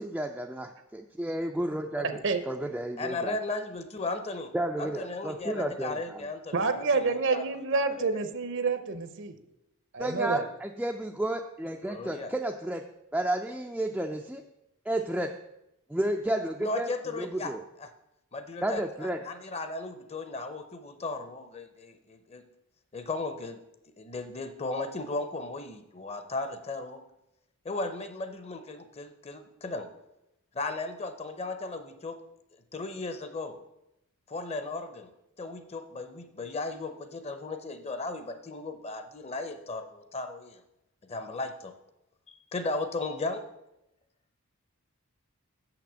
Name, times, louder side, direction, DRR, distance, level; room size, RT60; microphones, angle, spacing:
voice 1, 0.0-3.4 4.5-6.2 10.0-12.8 13.1-14.4 14.9-15.3 15.9-17.6 18.6-19.2, right 1 dB, 5° right, 2 dB, 0.3 m, -32 dB
voice 2, 2.0-2.4 6.5-9.4 9.9-10.4, right 4 dB, 55° right, 10 dB, 0.7 m, -28 dB
voice 3, 3.0-4.5 4.8-8.3 11.9-12.3 16.6-17.5 17.8-17.9 18.3-22.4 22.9-23.6 24.0-27.0 27.6-29.9 30.5-32.2 32.7-33.5 34.3-35.1 35.4-40.6 41.1-41.7 42.3-43.4, left 2 dB, 30° left, 9 dB, 0.6 m, -36 dB
6.8 x 5.9 x 7.4 m, 0.87 s
head